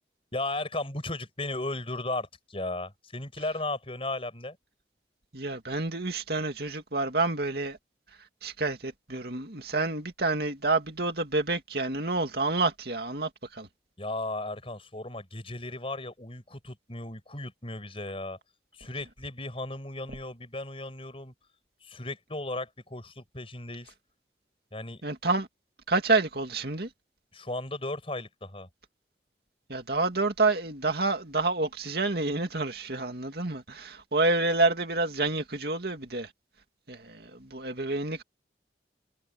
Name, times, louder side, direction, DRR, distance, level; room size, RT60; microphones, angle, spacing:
voice 1, 0.3-4.6 14.0-18.4 18.7-21.3 21.8-23.9 24.7-25.0 27.3-28.7, left 2 dB, 30° left, 5.9 m, -35 dB
voice 2, 5.3-7.8 8.4-13.7 25.0-25.5 25.9-26.9 29.7-36.3 36.9-38.2, right 3 dB, 60° right, 2.5 m, -28 dB
head